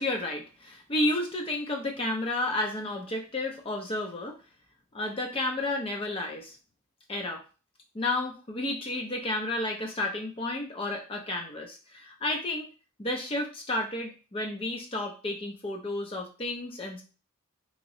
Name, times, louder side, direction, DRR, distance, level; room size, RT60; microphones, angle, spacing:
voice 1, 0.0-4.4 4.9-6.6 7.1-7.4 7.9-12.7 13.0-17.0, left 1 dB, 25° left, 2 dB, 0.5 m, -31 dB
3.0 x 2.8 x 2.6 m, 0.34 s
head